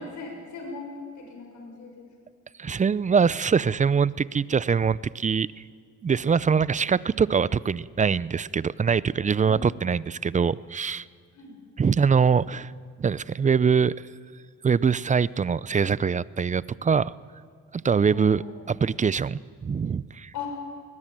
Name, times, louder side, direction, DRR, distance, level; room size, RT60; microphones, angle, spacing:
voice 1, 0.0-2.1 9.4-9.8 11.3-11.6 18.0-18.8 20.3-20.5, left 4 dB, 75° left, 1 dB, 6.7 m, -39 dB
voice 2, 2.6-5.5 6.0-11.0 11.8-12.7 13.0-13.9 14.6-17.1 17.7-18.4 18.7-20.3, right 6 dB, 25° right, 20 dB, 0.5 m, -23 dB
22.0 x 20.5 x 7.5 m, 2.2 s
cardioid pair, 90°, 30 cm